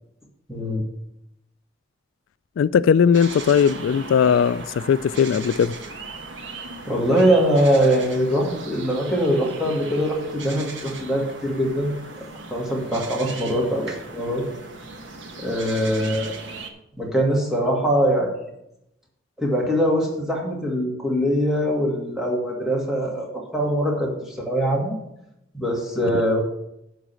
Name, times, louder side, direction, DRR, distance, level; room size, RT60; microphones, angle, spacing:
voice 1, 0.5-0.8 6.9-11.9 12.5-14.4 15.4-16.3 17.0-18.3 19.4-25.0 25.5-26.4, equal, ahead, 2.3 m, -22 dB
voice 2, 2.6-5.7, left 7 dB, 85° left, 0.3 m, -18 dB
sound 1, 3.1-16.7, right 3 dB, 75° right, 1.2 m, -38 dB
11.0 x 4.0 x 7.7 m
head